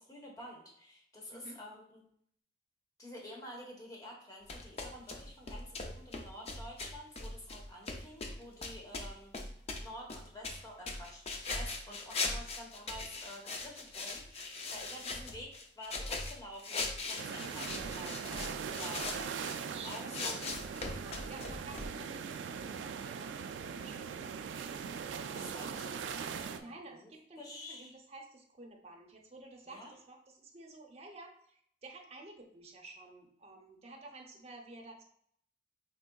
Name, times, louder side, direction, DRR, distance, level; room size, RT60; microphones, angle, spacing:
voice 1, 0.0-2.0 3.0-9.3 9.8-15.5 15.8-20.4 21.9-22.1 25.3-27.1 27.4-27.9 29.7-29.9, left 1 dB, 20° left, -2 dB, 1.0 m, -49 dB
sound 1, 4.5-19.6 19.8-21.9, left 3 dB, 35° left, 0.5 m, -40 dB
sound 2, 17.2-26.6, right 6 dB, 85° right, 0.3 m, -40 dB
voice 2, 19.7-20.2 20.6-22.2 22.5-24.4 26.4-35.0, right 2 dB, 35° right, 1 dB, 0.7 m, -52 dB
4.4 x 3.6 x 2.2 m, 0.66 s
head